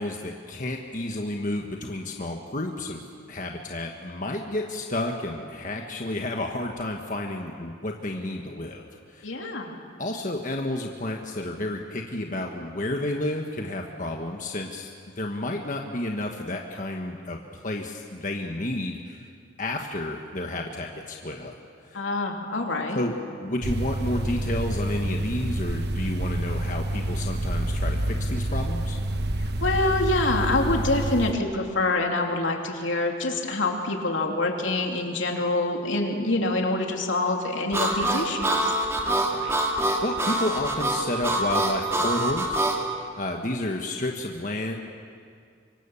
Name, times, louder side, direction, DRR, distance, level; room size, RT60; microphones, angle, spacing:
voice 1, 0.0-9.3 10.0-19.3 19.6-21.5 21.8-22.0 22.9-29.0 39.3-44.8, left 1 dB, 40° left, 2 dB, 1.4 m, -31 dB
voice 2, 9.2-9.8 21.9-23.0 29.4-38.7, left 2 dB, 75° left, 2 dB, 3.0 m, -26 dB
sound 1, 23.6-31.3, right 1 dB, 55° right, 0.9 m, -28 dB
Harmonica, 37.7-42.8, right 1 dB, 15° right, 2.2 m, -25 dB
25.0 x 25.0 x 7.2 m, 2.2 s
head